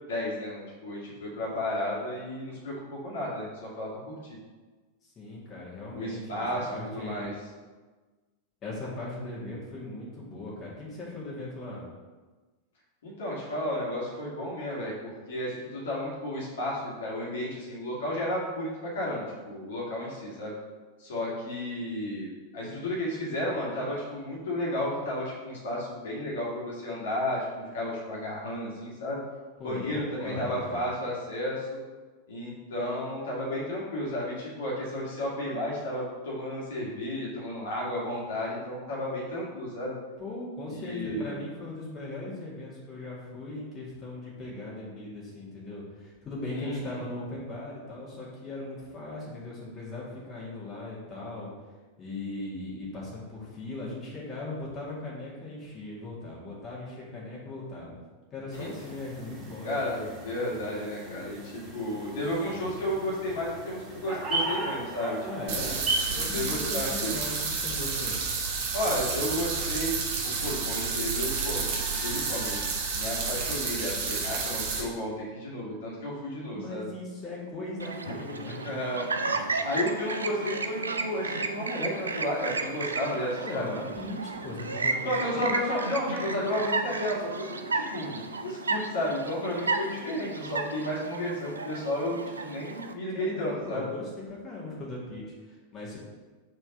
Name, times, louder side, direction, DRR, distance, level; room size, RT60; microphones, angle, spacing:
voice 1, 0.1-4.4 5.9-7.3 13.0-20.5 21.0-29.2 29.6-31.8 32.3-40.0 40.7-41.3 46.5-47.0 58.6-58.7 59.6-65.2 65.4-65.7 66.1-67.1 68.7-71.7 72.0-72.6 72.9-76.9 78.1-78.2 78.6-79.3 79.6-83.9 85.0-93.8, left 1 dB, 60° left, -5 dB, 2.0 m, -32 dB
voice 2, 5.0-7.3 8.6-11.8 29.6-30.8 40.2-51.5 52.0-57.9 58.3-59.8 65.3-65.8 66.1-67.3 67.6-68.2 76.5-78.8 83.4-85.5 93.1-96.0, left 2 dB, 25° left, -6 dB, 2.1 m, -39 dB
sound 1, 58.5-66.1, right 2 dB, 20° right, 1.9 m, -36 dB
sound 2, 65.5-74.8, right 4 dB, 50° right, 1.4 m, -30 dB
Chirp tweet, 77.8-92.9, right 3 dB, 75° right, 0.4 m, -33 dB
4.5 x 4.4 x 5.7 m, 1.3 s
figure-of-eight pair, 90°, 0 cm